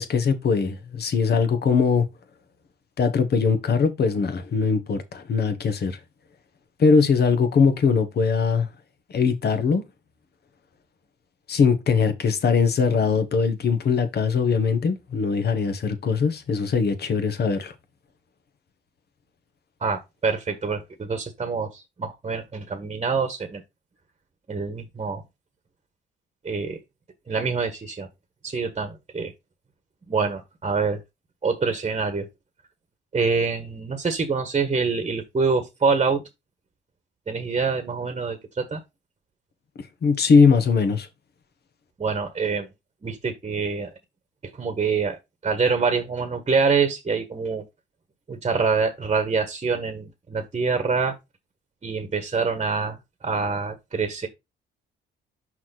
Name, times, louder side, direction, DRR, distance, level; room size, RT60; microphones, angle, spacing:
voice 1, 0.0-2.1 3.0-6.0 6.8-8.7 9.1-9.8 11.5-17.7 40.0-41.1, left 5 dB, 55° left, 1.5 m, -21 dB
voice 2, 19.8-23.6 24.5-25.2 26.4-26.8 27.3-28.1 28.4-29.3 30.1-31.0 31.4-32.3 33.1-36.2 37.3-38.8 42.0-42.7 43.0-43.9 44.6-47.6 48.3-51.1 51.8-54.3, right 4 dB, 30° right, 1.3 m, -25 dB
5.8 x 4.8 x 4.1 m
cardioid pair, 90°, 20 cm